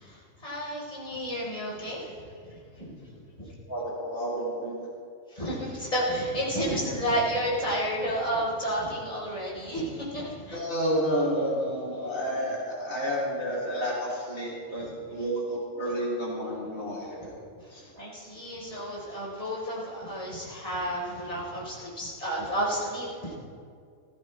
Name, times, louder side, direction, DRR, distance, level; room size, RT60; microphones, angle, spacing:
voice 1, 0.0-2.9 3.4-3.5 5.3-10.6 17.7-23.3, equal, 25° left, -6 dB, 4.2 m, -31 dB
voice 2, 3.7-4.8 10.5-17.4 17.7-17.8, equal, 70° left, -6 dB, 3.4 m, -30 dB
18.5 x 15.5 x 3.3 m, 2.2 s
omnidirectional pair, 1.5 m